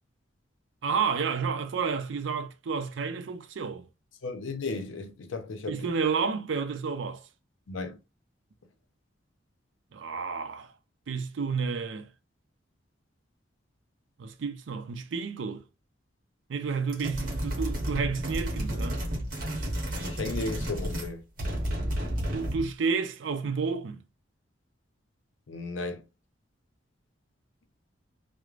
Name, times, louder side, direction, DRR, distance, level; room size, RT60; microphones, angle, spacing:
voice 1, 0.8-3.9 5.7-7.2 9.9-10.7 11.1-12.1 14.2-15.6 16.5-19.0 22.3-24.0, right 5 dB, 75° right, 0.4 m, -30 dB
voice 2, 4.2-5.9 7.7-8.0 20.0-21.2 25.5-26.0, left 3 dB, 85° left, 0.6 m, -34 dB
sound 1, 16.9-21.1 21.4-22.7, equal, 45° right, 0.9 m, -32 dB
3.1 x 2.0 x 2.4 m
head